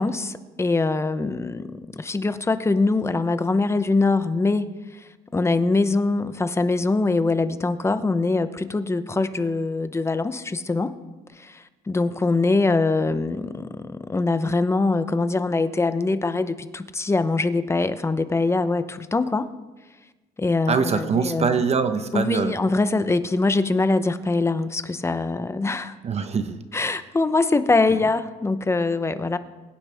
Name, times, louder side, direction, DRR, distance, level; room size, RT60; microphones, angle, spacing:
voice 1, 0.0-5.0 5.3-10.9 11.4-19.5 20.4-21.6 22.1-26.0 26.7-29.4, left 3 dB, 15° left, 11 dB, 0.8 m, -23 dB
voice 2, 20.7-22.5 26.0-26.6, right 5 dB, 40° right, 9 dB, 1.0 m, -23 dB
22.5 x 9.9 x 3.5 m, 1.2 s
cardioid pair, 110°, 17 cm